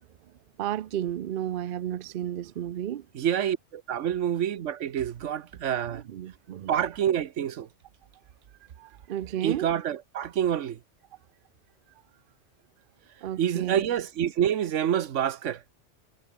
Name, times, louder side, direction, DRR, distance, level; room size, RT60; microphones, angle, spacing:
voice 1, 0.6-3.0 5.9-6.7 8.8-9.7 13.2-13.9, right 11 dB, 55° right, 0.7 m, -33 dB
voice 2, 3.1-6.0 6.7-7.7 9.4-10.8 13.4-15.6, right 9 dB, 90° right, 1.2 m, -27 dB
omnidirectional pair, 1.2 m